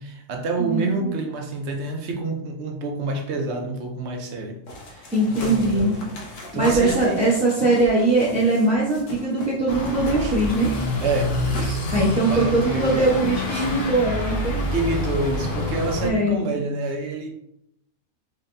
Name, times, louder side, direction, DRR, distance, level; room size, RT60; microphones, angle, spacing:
voice 1, 0.0-4.6 4.9-6.1 6.5-7.2 10.2-10.3 11.0-11.8 12.1-13.2 13.5-13.7 14.7-17.3, right 3 dB, 65° right, 2 dB, 0.9 m, -28 dB
voice 2, 0.6-1.1 5.1-6.0 6.5-10.7 11.9-14.6 16.0-16.4, right 2 dB, 5° right, -9 dB, 0.7 m, -21 dB
sound 1, 4.7-9.6 9.9-12.1, left 1 dB, 75° left, 1.2 m, -38 dB
sound 2, 9.7-16.1, left 2 dB, 55° left, 1.0 m, -27 dB
4.1 x 3.1 x 2.6 m, 0.75 s
omnidirectional pair, 1.3 m